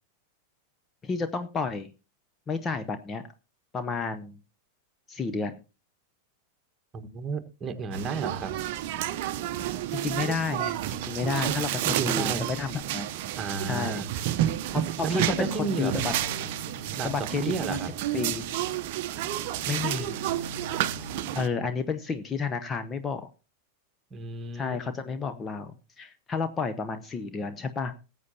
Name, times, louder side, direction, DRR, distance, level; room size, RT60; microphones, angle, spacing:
voice 1, 1.0-1.9 2.5-3.2 3.7-4.4 5.1-5.6 9.9-13.1 13.7-14.2 14.7-16.2 17.0-17.8 18.1-18.5 19.7-20.2 21.3-23.3 24.5-27.9, left 5 dB, 20° left, 0.8 m, -31 dB
voice 2, 6.9-8.5 11.2-12.4 13.4-14.1 15.0-15.9 16.9-17.1 17.4-17.9 24.1-24.8, right 4 dB, 20° right, 1.5 m, -32 dB
sound 1, 7.9-21.5, right 13 dB, 50° right, 0.7 m, -31 dB
Bowed string instrument, 15.3-21.9, left 2 dB, 90° right, 0.8 m, -45 dB
19.5 x 8.1 x 2.8 m
figure-of-eight pair, 90°, 0 cm